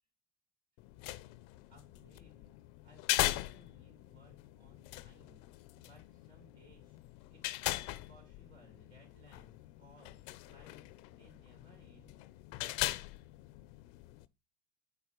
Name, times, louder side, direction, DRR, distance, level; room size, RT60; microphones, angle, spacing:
sound 1, 0.8-14.3, left 18 dB, 70° left, 0.5 m, -40 dB
voice 1, 1.7-2.5 2.8-5.4 5.7-7.0 7.3-7.6 7.8-12.2, equal, 60° right, 2 dB, 3.5 m, -63 dB
5.6 x 4.1 x 5.8 m, 0.26 s
supercardioid pair, 105°, 11 cm